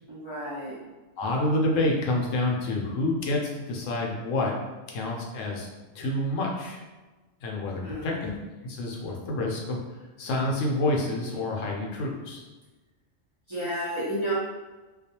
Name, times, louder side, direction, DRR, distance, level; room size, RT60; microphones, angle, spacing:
voice 1, 0.1-0.8 7.8-8.2 13.5-14.3, right 1 dB, 35° right, -11 dB, 0.5 m, -31 dB
voice 2, 1.2-4.5 4.9-5.7 5.9-6.8 7.4-8.3 8.6-9.8 10.2-12.4, left 2 dB, 85° left, -1 dB, 0.9 m, -28 dB
2.3 x 2.3 x 2.8 m, 1.2 s
omnidirectional pair, 1.3 m